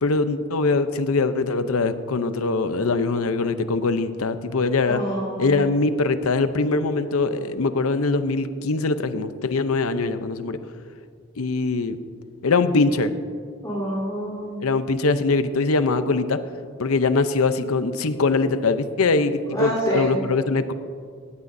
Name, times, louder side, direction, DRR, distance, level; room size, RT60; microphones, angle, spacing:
voice 1, 0.0-5.0 5.4-10.6 11.4-12.0 12.4-13.1 14.6-16.4 16.8-20.7, left 3 dB, 85° left, 11 dB, 0.7 m, -22 dB
voice 2, 4.9-5.6 13.6-14.6 19.5-20.2, right 1 dB, 20° left, -10 dB, 3.6 m, -27 dB
18.0 x 15.5 x 2.7 m, 2.1 s
head